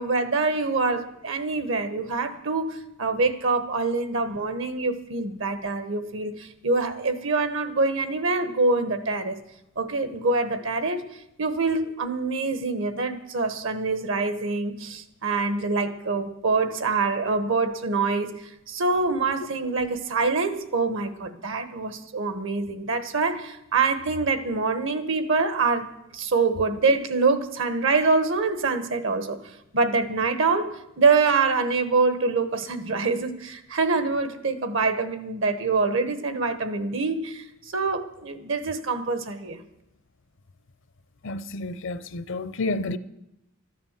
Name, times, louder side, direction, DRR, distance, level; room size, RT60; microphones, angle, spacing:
voice 1, 0.0-9.4 9.8-11.0 11.4-29.4 29.7-39.6, right 3 dB, 65° right, 1.1 m, -25 dB
voice 2, 41.2-43.0, left 2 dB, 65° left, 0.7 m, -30 dB
13.5 x 9.6 x 7.3 m
head